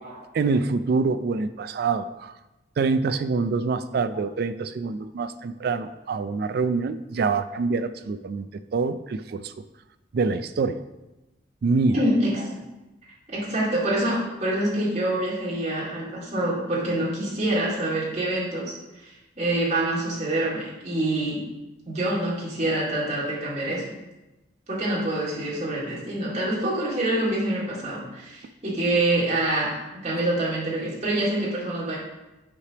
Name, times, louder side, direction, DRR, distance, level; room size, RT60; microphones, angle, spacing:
voice 1, 0.3-2.3 2.8-8.5 8.7-9.5 10.1-10.8 11.6-12.0, right 4 dB, 55° right, 11 dB, 0.3 m, -25 dB
voice 2, 11.9-12.6 13.3-21.4 21.9-23.8 24.7-32.0, right 1 dB, 35° right, -6 dB, 2.1 m, -26 dB
8.3 x 3.3 x 5.9 m, 1.0 s
head